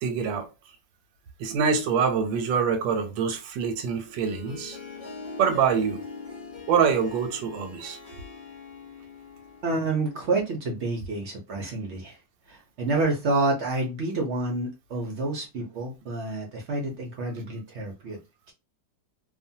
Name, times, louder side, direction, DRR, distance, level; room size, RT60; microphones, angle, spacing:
voice 1, 0.0-0.5 1.4-4.8 5.4-6.0 6.7-8.0, right 6 dB, 85° right, 1.4 m, -25 dB
Harp, 3.9-10.4, left 4 dB, 40° left, 0.7 m, -43 dB
voice 2, 9.6-12.2 12.5-18.2, right 2 dB, 65° right, 0.7 m, -28 dB
2.9 x 2.2 x 2.7 m
omnidirectional pair, 2.0 m